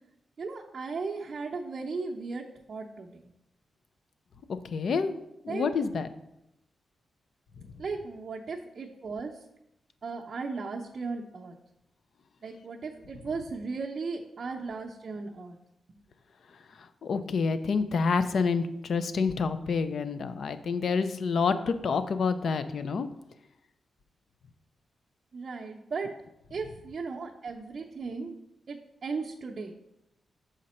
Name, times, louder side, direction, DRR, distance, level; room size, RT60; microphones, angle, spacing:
voice 1, 0.4-3.1 5.5-5.9 7.8-9.3 10.0-11.5 12.4-15.6 25.3-26.1 26.5-28.3 28.7-29.7, right 4 dB, 45° right, -2 dB, 0.6 m, -36 dB
voice 2, 4.7-5.2 5.4-6.1 17.0-23.1, left 5 dB, 60° left, 11 dB, 0.5 m, -28 dB
6.4 x 5.0 x 4.2 m, 0.85 s
wide cardioid pair, 115°, 0 cm